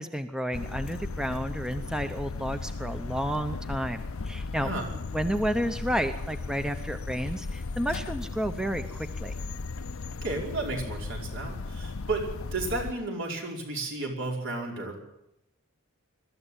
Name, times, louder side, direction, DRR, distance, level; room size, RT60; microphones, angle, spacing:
voice 1, 0.0-9.4, equal, 5° right, 8 dB, 0.9 m, -31 dB
sound 1, 0.5-12.9, left 3 dB, 75° left, 0.7 m, -36 dB
voice 2, 4.6-4.9 10.2-15.1, right 2 dB, 60° right, 1 dB, 5.3 m, -33 dB
22.0 x 13.5 x 9.0 m, 0.84 s
head